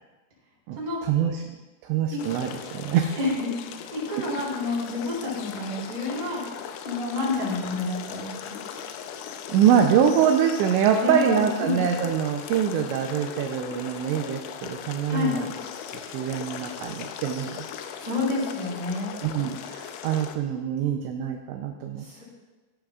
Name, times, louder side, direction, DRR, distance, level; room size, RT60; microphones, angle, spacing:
voice 1, 0.7-1.4 1.8-3.2 9.5-15.5 16.1-17.6 19.2-22.2, right 8 dB, 80° right, 4 dB, 2.7 m, -24 dB
sound 1, 2.2-20.4, left 8 dB, 85° left, 3.3 m, -38 dB
voice 2, 3.2-3.5 3.9-6.4 6.9-8.6 11.0-11.8 15.1-15.3 18.0-19.1 22.0-22.2, left 3 dB, 20° right, -6 dB, 4.4 m, -29 dB
16.5 x 11.0 x 2.4 m, 1.2 s
omnidirectional pair, 5.7 m